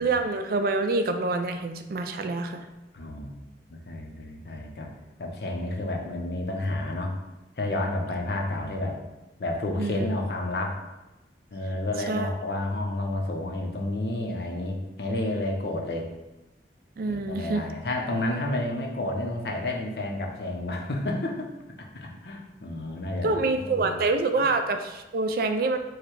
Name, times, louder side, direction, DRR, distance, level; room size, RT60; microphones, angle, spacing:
voice 1, 0.0-2.7 9.8-10.1 12.1-12.3 17.0-17.7 23.2-25.8, right 3 dB, 55° right, 7 dB, 0.4 m, -26 dB
voice 2, 2.9-3.4 3.7-4.9 5.2-7.1 7.6-9.0 9.4-10.8 11.5-16.1 17.0-24.0 24.4-24.5, left 1 dB, 60° left, 1 dB, 0.7 m, -31 dB
4.7 x 2.2 x 4.6 m, 1.0 s
head